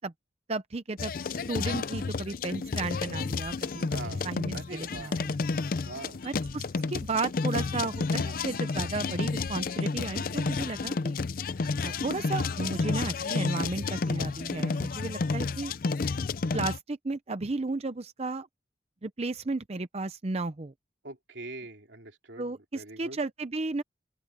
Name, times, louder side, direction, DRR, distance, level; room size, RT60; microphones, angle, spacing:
voice 1, 0.5-5.4 6.2-11.2 11.8-15.7 16.5-18.5 19.0-20.7 22.4-23.8, right 3 dB, 35° right, 0.6 m, -34 dB
sound 1, 1.0-16.8, left 4 dB, 50° left, 0.5 m, -31 dB
sound 2, 1.2-10.4, right 3 dB, 55° right, 7.7 m, -52 dB
voice 2, 3.9-4.2 4.5-5.2 5.8-6.2 21.0-23.2, right 2 dB, 85° right, 2.9 m, -43 dB
open air
head